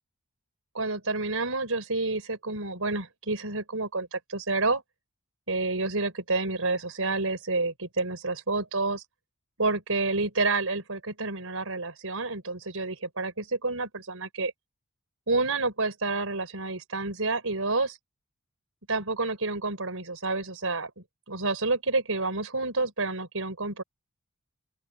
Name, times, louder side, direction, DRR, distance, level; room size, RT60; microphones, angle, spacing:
voice 1, 0.7-4.8 5.5-9.0 9.6-14.5 15.3-18.0 18.9-23.8, right 3 dB, 65° right, 6.4 m, -29 dB
open air
head